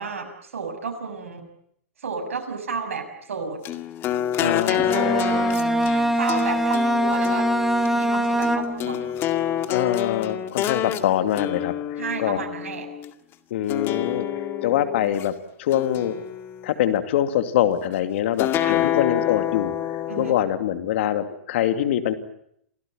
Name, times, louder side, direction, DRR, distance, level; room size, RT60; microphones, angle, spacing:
voice 1, 0.0-1.5 2.0-3.6 4.4-5.2 6.2-7.5 7.9-9.1 12.0-12.9 18.6-18.8 20.1-20.4, right 5 dB, 75° right, 5 dB, 6.9 m, -32 dB
sound 1, 3.6-13.1 13.7-15.3 15.7-16.8 18.4-20.3, left 11 dB, 30° left, 2.1 m, -28 dB
voice 2, 4.4-5.6 9.7-12.4 13.5-15.3 15.6-16.2 16.6-22.1, left 11 dB, 60° left, 9 dB, 2.6 m, -24 dB
Bowed string instrument, 4.8-9.0, equal, 5° right, 2.2 m, -23 dB
28.5 x 18.0 x 9.1 m, 0.72 s
hypercardioid pair, 120°, 7 cm